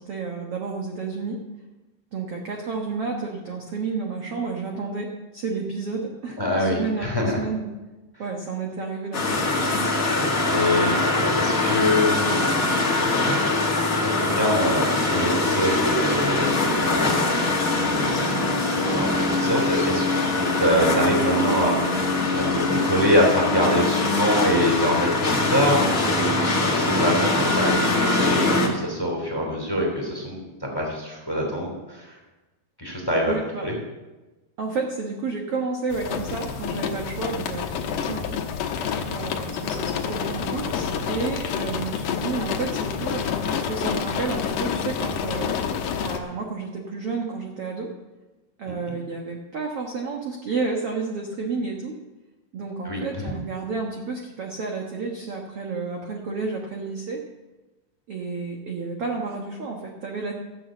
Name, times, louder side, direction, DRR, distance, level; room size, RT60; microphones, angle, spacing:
voice 1, 0.0-1.4 2.1-7.7 8.2-9.4 33.3-33.7 34.6-38.7 39.1-47.9 48.6-51.9 52.5-57.2 58.1-60.3, right 4 dB, 70° right, 1 dB, 1.4 m, -31 dB
voice 2, 6.4-7.4 10.5-11.0 11.3-12.4 14.0-17.1 17.8-20.0 20.3-22.0 22.3-32.2 32.8-33.3 33.6-33.7 48.9-49.0 52.8-53.2, equal, 5° left, 0 dB, 2.0 m, -25 dB
sound 1, 9.1-28.7, left 2 dB, 45° left, 1.0 m, -22 dB
sound 2, 35.9-46.2, left 7 dB, 70° left, 2.3 m, -28 dB
13.5 x 7.9 x 7.5 m, 1.1 s
omnidirectional pair, 4.7 m